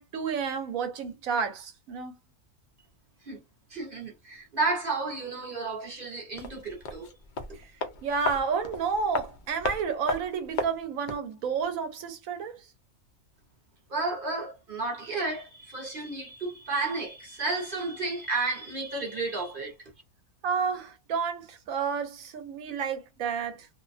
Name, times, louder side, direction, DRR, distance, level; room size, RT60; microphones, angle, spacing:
voice 1, 0.0-2.2 7.5-7.7 8.0-12.7 20.4-23.7, right 6 dB, 70° right, 1.0 m, -31 dB
voice 2, 3.7-7.1 13.9-19.7, right 3 dB, 50° right, 0.7 m, -32 dB
sound 1, 6.3-11.3 11.6-11.7, left 3 dB, 75° left, 0.4 m, -35 dB
2.6 x 2.1 x 2.5 m
omnidirectional pair, 1.5 m